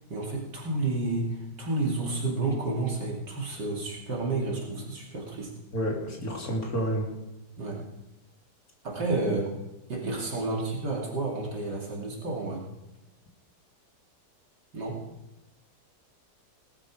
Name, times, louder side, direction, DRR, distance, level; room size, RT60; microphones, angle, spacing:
voice 1, 0.1-5.5 7.6-7.8 8.8-9.5 9.9-12.6 14.7-15.0, right 2 dB, 75° right, -2 dB, 3.3 m, -30 dB
voice 2, 5.7-7.1, right 1 dB, 55° left, -1 dB, 3.7 m, -29 dB
20.0 x 12.5 x 4.9 m, 0.96 s
omnidirectional pair, 1.9 m